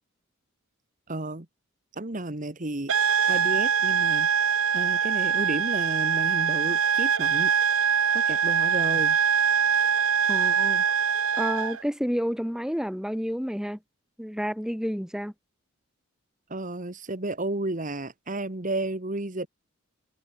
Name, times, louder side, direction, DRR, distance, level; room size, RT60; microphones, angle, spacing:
voice 1, 1.1-1.5 1.9-2.9 3.3-7.5 8.1-9.2 16.5-19.5, right 2 dB, 35° right, 1.5 m, -32 dB
sound 1, 2.9-11.8, right 7 dB, 75° right, 1.6 m, -23 dB
voice 2, 10.3-10.8 11.4-13.8 14.2-15.3, equal, 5° right, 4.7 m, -30 dB
head